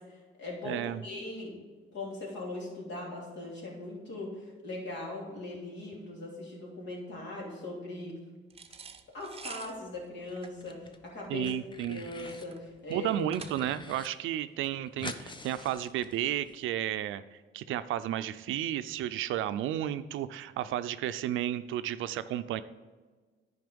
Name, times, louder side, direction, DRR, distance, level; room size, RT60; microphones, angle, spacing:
voice 1, 0.0-1.6 1.9-8.2 9.1-11.5 11.9-13.3, left 2 dB, 65° left, -2 dB, 2.9 m, -40 dB
voice 2, 0.6-1.0 11.3-12.0 12.9-17.2 17.5-22.6, right 12 dB, 80° right, 13 dB, 0.5 m, -32 dB
sound 1, 8.5-13.9, right 5 dB, 30° right, 0.6 m, -48 dB
sound 2, 10.3-11.0 11.2-12.5 12.9-14.1 14.4-14.5 14.6-16.6, left 3 dB, 25° left, 0.6 m, -46 dB
9.5 x 5.3 x 5.2 m, 1.4 s
cardioid pair, 90°, 20 cm